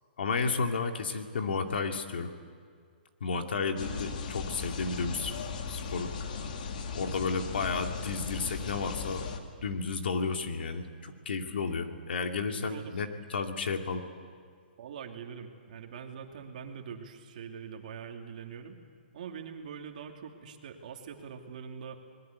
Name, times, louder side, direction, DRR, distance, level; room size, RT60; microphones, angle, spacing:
voice 1, 0.2-2.3 3.2-5.4 5.7-6.1 6.9-9.3 9.6-14.0, left 4 dB, 75° left, 4 dB, 2.4 m, -32 dB
sound 1, 3.8-9.4, left 5 dB, 50° left, 2.2 m, -37 dB
voice 2, 12.6-13.0 14.8-18.8 19.1-22.0, right 7 dB, 45° right, 3 dB, 2.6 m, -43 dB
25.5 x 20.5 x 8.3 m, 2.1 s
hypercardioid pair, 170°, 6 cm